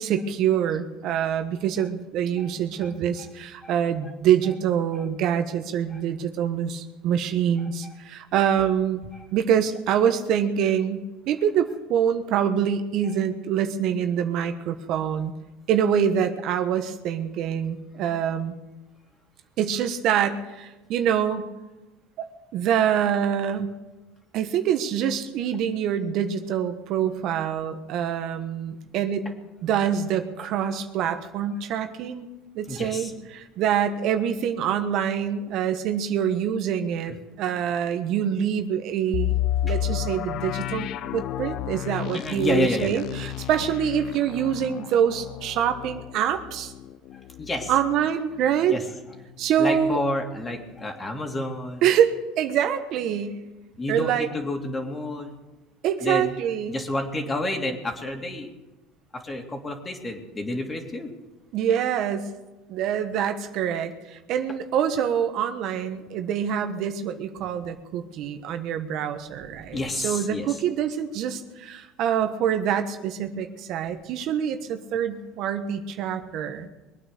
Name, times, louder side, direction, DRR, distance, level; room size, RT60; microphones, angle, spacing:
voice 1, 0.0-9.0 9.3-11.0 11.3-15.3 15.7-18.5 19.6-21.5 22.2-23.7 24.3-29.3 29.6-32.3 32.5-37.1 37.4-39.3 39.6-46.7 47.7-48.8 49.4-50.0 51.8-53.4 53.9-54.3 55.8-56.8 61.5-62.3 62.7-76.7, right 9 dB, 60° right, 8 dB, 1.3 m, -25 dB
voice 2, 32.7-33.1 39.7-39.8 42.1-43.0 47.1-47.7 48.7-48.8 49.6-51.8 53.8-55.3 56.0-56.3 56.7-58.5 59.1-61.1 69.7-70.5, left 1 dB, 25° left, 3 dB, 3.0 m, -29 dB
sound 1, 39.1-48.9 49.2-49.3 49.8-50.1, left 12 dB, 60° left, 0.6 m, -31 dB
22.5 x 9.1 x 6.7 m, 1.1 s
supercardioid pair, 90°, 0 cm